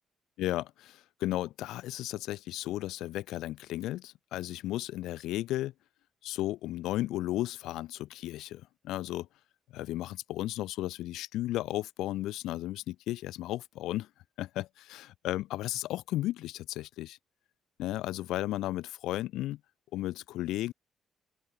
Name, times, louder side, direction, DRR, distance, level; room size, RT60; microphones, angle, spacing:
voice 1, 0.4-5.7 6.2-9.3 9.7-14.1 14.4-17.2 17.8-19.6 19.9-20.7, left 15 dB, 90° left, 0.7 m, -34 dB
open air
cardioid pair, 90°, 0 cm